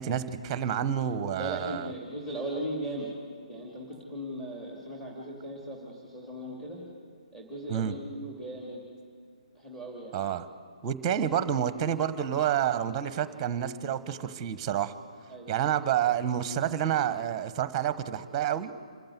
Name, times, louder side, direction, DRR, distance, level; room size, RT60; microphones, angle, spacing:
voice 1, 0.0-1.9 7.7-7.9 10.1-10.4 10.8-14.9 15.5-18.7, right 9 dB, 20° right, 13 dB, 1.1 m, -29 dB
voice 2, 1.4-3.1 3.5-6.8 7.3-8.8 9.5-10.1 15.3-15.5, right 1 dB, 10° left, -2 dB, 2.8 m, -38 dB
27.0 x 14.5 x 9.4 m, 2.2 s
figure-of-eight pair, 135°, 4 cm